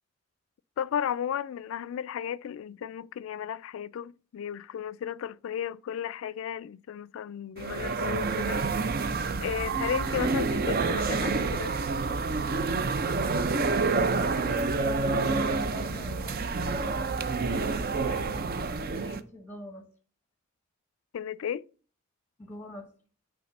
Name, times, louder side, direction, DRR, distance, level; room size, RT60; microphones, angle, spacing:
voice 1, 0.8-8.9 9.4-11.8 21.1-21.6, left 9 dB, 75° left, 0.3 m, -34 dB
sound 1, 7.6-19.2, right 4 dB, 45° right, 0.5 m, -28 dB
voice 2, 14.0-16.9 17.6-18.4 18.8-19.9 22.4-22.9, left 1 dB, 10° left, 0.9 m, -45 dB
8.6 x 3.5 x 5.2 m
head